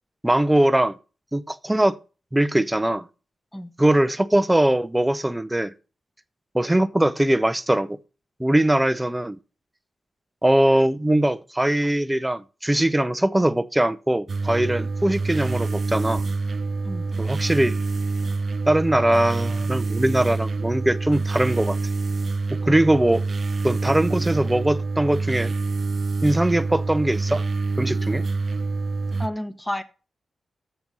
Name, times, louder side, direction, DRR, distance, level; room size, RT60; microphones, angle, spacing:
voice 1, 0.2-1.0 1.3-2.0 2.3-3.0 3.8-5.7 6.5-8.0 8.4-9.4 10.4-16.2 17.2-17.8 18.7-21.8 22.5-23.2 23.6-25.5 26.2-27.4 27.8-28.2, right 1 dB, 10° right, 0.6 m, -21 dB
sound 1, 14.3-29.3, right 3 dB, 55° right, 0.5 m, -26 dB
voice 2, 29.2-29.8, left 1 dB, 5° left, 1.0 m, -31 dB
7.1 x 6.8 x 6.0 m
cardioid pair, 75°, 0 cm